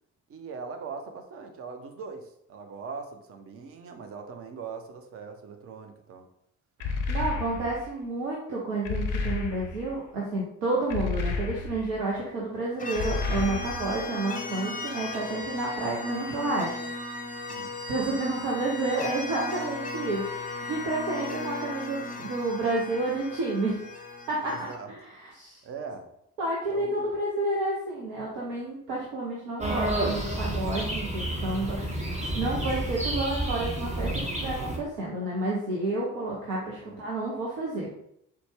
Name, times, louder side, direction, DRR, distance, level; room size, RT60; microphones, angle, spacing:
voice 1, 0.3-6.3 17.5-17.7 24.5-24.9 25.6-26.1 26.7-27.1 36.8-37.0, right 5 dB, 35° right, 6 dB, 0.5 m, -41 dB
sound 1, 6.8-7.9 8.8-9.9 10.9-12.0 12.9-14.0, left 4 dB, 75° left, 0.5 m, -31 dB
voice 2, 6.8-16.8 17.9-23.8 24.3-24.6 24.9-25.6 26.4-31.8 32.3-37.9, right 2 dB, 65° right, -4 dB, 0.7 m, -30 dB
sound 2, 12.8-24.8, left 3 dB, 20° left, 0.5 m, -36 dB
sound 3, 29.6-34.8, right 1 dB, 15° right, 0.9 m, -30 dB
4.1 x 2.2 x 3.2 m, 0.74 s
figure-of-eight pair, 40°, 42 cm